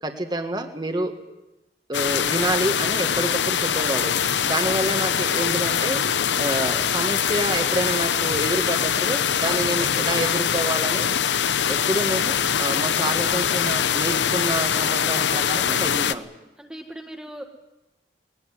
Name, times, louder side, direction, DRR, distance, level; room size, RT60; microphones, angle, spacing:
voice 1, 0.0-1.1 1.9-4.1 4.4-6.0 6.4-11.1 11.7-16.3, right 1 dB, 25° right, 6 dB, 1.7 m, -28 dB
sound 1, 1.9-16.1, left 8 dB, 90° left, 0.8 m, -23 dB
voice 2, 16.6-17.4, right 1 dB, 5° right, 2 dB, 1.4 m, -39 dB
20.0 x 18.5 x 9.6 m, 1.0 s
head